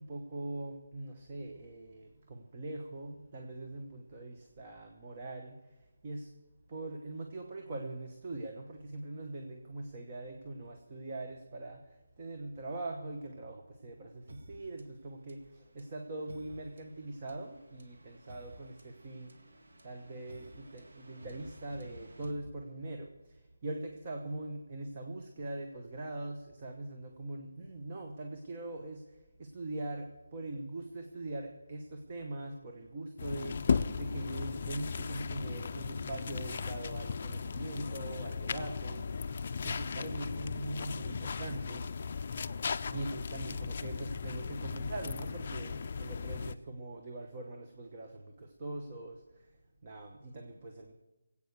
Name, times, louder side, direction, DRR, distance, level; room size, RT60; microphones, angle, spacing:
voice 1, 0.0-5.6 6.0-6.3 6.7-11.8 12.2-19.3 19.8-29.0 29.4-33.6 34.0-39.0 39.6-42.1 42.9-49.2 49.8-50.9, right 2 dB, 25° right, 3 dB, 1.0 m, -42 dB
sound 1, 14.3-23.1, equal, 70° right, 2.0 m, -55 dB
sound 2, 33.2-46.6, left 5 dB, 35° left, 0.5 m, -36 dB
20.0 x 8.5 x 6.6 m, 1.1 s
hypercardioid pair, 175°, 0 cm